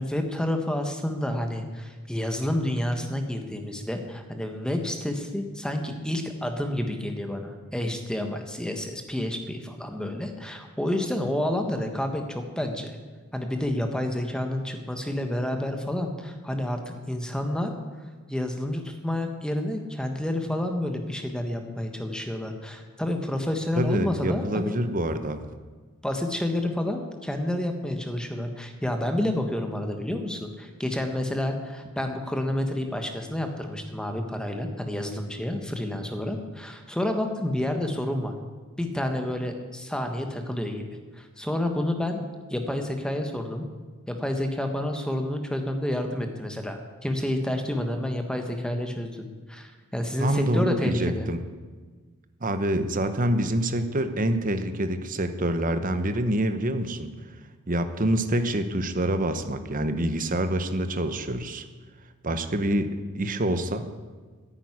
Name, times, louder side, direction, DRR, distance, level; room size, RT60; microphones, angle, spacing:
voice 1, 0.0-13.0 13.3-17.7 18.3-24.8 26.0-38.3 38.8-40.8 41.2-43.6 44.1-51.3, left 1 dB, 5° left, 5 dB, 1.3 m, -29 dB
voice 2, 23.8-25.4 50.2-51.4 52.4-57.1 57.7-61.6 62.2-63.9, right 1 dB, 35° right, 9 dB, 0.9 m, -26 dB
10.5 x 9.1 x 9.7 m, 1.4 s
head